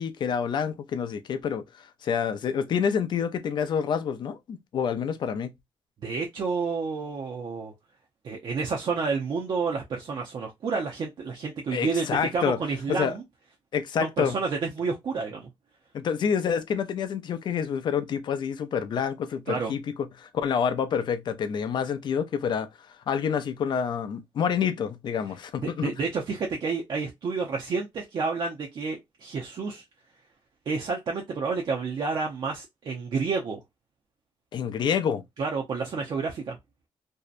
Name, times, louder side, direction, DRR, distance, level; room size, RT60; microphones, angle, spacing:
voice 1, 0.0-5.5 11.7-12.6 12.9-13.1 13.7-14.4 15.9-19.8 20.2-22.7 23.1-25.9 34.5-35.2, left 7 dB, 55° left, 0.5 m, -28 dB
voice 2, 6.0-7.7 8.2-12.1 12.3-13.2 14.0-15.5 19.5-19.7 25.6-29.8 30.7-33.6 35.4-36.6, right 4 dB, 55° right, 0.6 m, -30 dB
2.6 x 2.1 x 2.4 m
cardioid pair, 115°, 9 cm